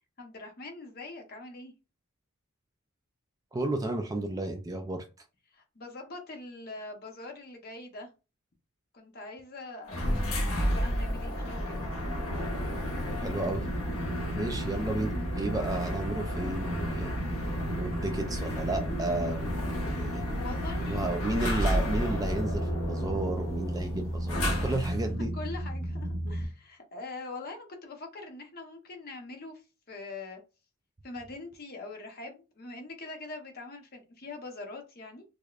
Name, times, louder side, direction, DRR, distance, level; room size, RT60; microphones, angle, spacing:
voice 1, 0.2-1.7 5.5-8.1 8.9-10.0 10.2-11.9 20.3-21.2 23.9-24.0 25.0-30.4 31.0-35.2, left 2 dB, 45° left, 0.8 m, -43 dB
voice 2, 3.5-5.1 13.0-13.7 14.3-17.1 17.8-20.3 20.9-25.3, right 2 dB, 15° right, 0.3 m, -33 dB
sound 1, 9.9-25.1, equal, 80° left, 0.9 m, -32 dB
sound 2, 11.5-26.5, right 1 dB, 70° right, 0.9 m, -36 dB
4.8 x 2.1 x 2.4 m
head